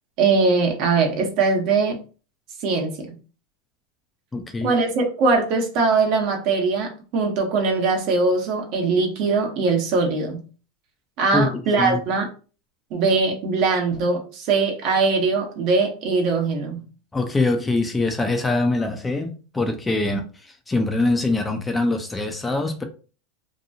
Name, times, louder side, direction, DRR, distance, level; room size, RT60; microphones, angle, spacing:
voice 1, 0.2-2.0 2.6-3.1 4.6-10.4 11.2-12.3 12.9-16.8, right 4 dB, 55° right, 1.0 m, -21 dB
voice 2, 4.3-4.7 11.3-12.0 17.1-22.8, left 2 dB, 15° left, 0.5 m, -23 dB
2.8 x 2.2 x 2.7 m
supercardioid pair, 115°, 0 cm